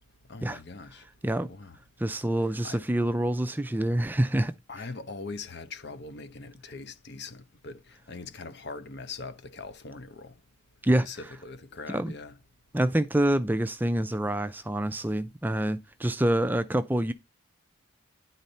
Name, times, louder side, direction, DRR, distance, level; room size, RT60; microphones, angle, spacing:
voice 1, 0.3-1.0 1.4-1.8 2.6-2.8 4.7-10.3 11.0-12.4, left 3 dB, 55° left, 1.0 m, -41 dB
voice 2, 2.0-4.8 10.8-11.3 11.9-12.1 12.7-17.1, right 1 dB, 10° right, 0.4 m, -27 dB
10.5 x 4.0 x 5.5 m
head